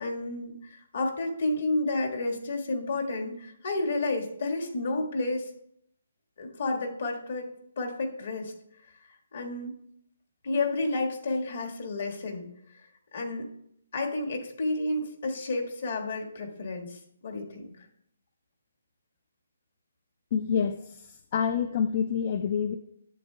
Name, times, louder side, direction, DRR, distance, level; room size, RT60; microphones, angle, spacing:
voice 1, 0.0-5.5 6.4-7.5 7.8-8.5 9.3-9.7 10.4-12.8 13.1-13.5 13.9-17.9, left 2 dB, 60° left, 2 dB, 1.5 m, -31 dB
voice 2, 20.3-22.7, left 7 dB, 40° left, 11 dB, 0.3 m, -27 dB
11.0 x 7.4 x 2.2 m, 0.73 s
hypercardioid pair, 160°, 0 cm